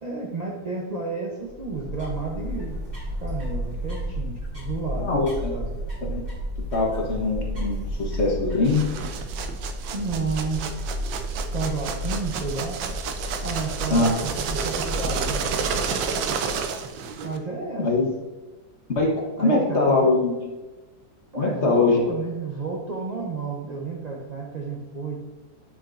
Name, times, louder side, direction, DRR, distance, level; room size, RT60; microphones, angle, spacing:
voice 1, 0.0-2.8 3.2-5.1 5.5-5.7 9.9-11.0 11.5-12.8 13.4-15.4 17.2-18.1 19.4-20.1 21.3-25.2, right 4 dB, 40° right, -2 dB, 0.6 m, -31 dB
sound 1, 1.5-16.7, equal, 25° right, 2.4 m, -33 dB
voice 2, 5.0-5.5 6.0-6.2 6.7-8.9 13.9-14.2 17.8-18.1 18.9-20.3 21.4-22.1, left 3 dB, 45° left, -1 dB, 1.2 m, -22 dB
sound 2, 8.6-17.4, right 6 dB, 85° right, 1.3 m, -31 dB
9.6 x 5.8 x 2.6 m, 1.2 s
omnidirectional pair, 1.9 m